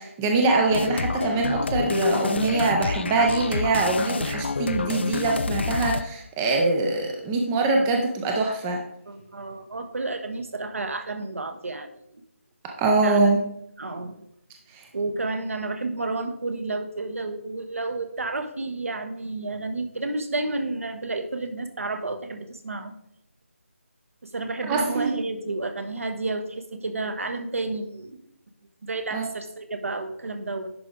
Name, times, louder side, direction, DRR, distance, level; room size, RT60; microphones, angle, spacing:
voice 1, 0.0-8.8 12.8-13.4 14.7-14.8 24.7-25.1 29.1-29.3, right 3 dB, 10° right, 1 dB, 0.4 m, -23 dB
sound 1, 0.7-6.0, left 4 dB, 50° left, 0.5 m, -28 dB
voice 2, 9.1-12.0 13.0-13.3 13.8-14.2 14.9-23.0 24.2-28.2 28.8-30.7, right 2 dB, 70° right, 7 dB, 1.3 m, -31 dB
10.5 x 4.8 x 3.9 m, 0.74 s
figure-of-eight pair, 170°, 8 cm